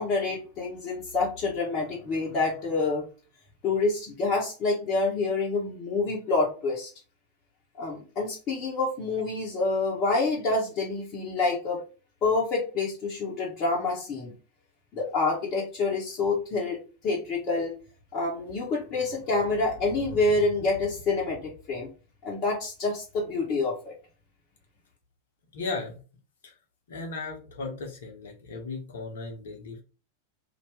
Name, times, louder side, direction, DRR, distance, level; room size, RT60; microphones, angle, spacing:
voice 1, 0.0-3.0 3.6-6.9 7.8-11.8 12.2-14.3 14.9-17.7 18.1-21.9 22.2-23.9, left 3 dB, 35° left, -4 dB, 1.1 m, -27 dB
voice 2, 25.5-26.0 26.4-26.5 26.9-29.8, left 3 dB, 60° left, 1 dB, 1.0 m, -36 dB
2.9 x 2.5 x 3.3 m, 0.34 s
figure-of-eight pair, 90°, 0 cm